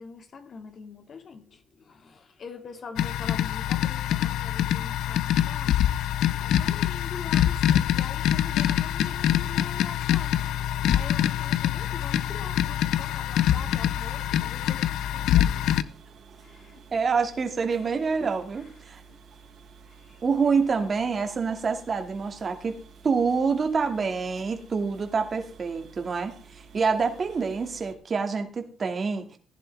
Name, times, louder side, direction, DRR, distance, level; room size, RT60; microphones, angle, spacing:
voice 1, 0.0-5.8 6.3-15.7 16.4-16.8 18.5-19.2 19.9-20.2, left 5 dB, 50° left, 6 dB, 2.1 m, -44 dB
sound 1, 3.0-15.8, left 11 dB, 85° left, 0.6 m, -25 dB
sound 2, 8.5-27.9, right 5 dB, 65° right, 3.8 m, -51 dB
voice 2, 16.9-19.0 20.2-29.4, right 5 dB, 40° right, 6 dB, 2.2 m, -27 dB
15.5 x 10.5 x 3.5 m, 0.38 s
cardioid pair, 90°, 0 cm